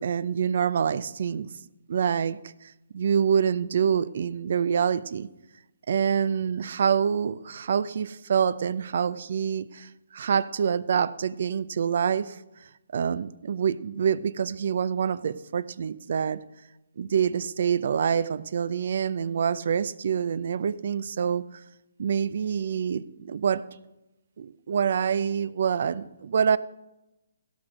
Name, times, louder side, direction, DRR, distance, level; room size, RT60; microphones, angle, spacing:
voice 1, 0.0-1.5 1.9-2.5 2.9-5.3 5.9-12.4 12.9-16.4 17.0-21.6 22.0-23.7 24.4-26.6, right 7 dB, 55° right, 18 dB, 0.5 m, -26 dB
16.5 x 6.2 x 6.2 m, 0.95 s
hypercardioid pair, 150°, 0 cm